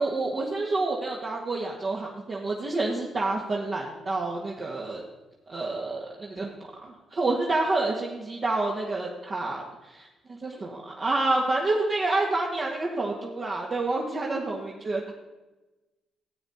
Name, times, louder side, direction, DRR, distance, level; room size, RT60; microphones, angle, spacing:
voice 1, 0.0-5.0 5.5-6.5 6.8-15.1, right 2 dB, 45° right, -4 dB, 1.9 m, -28 dB
13.0 x 8.6 x 4.3 m, 1.1 s
hypercardioid pair, 45°, 0 cm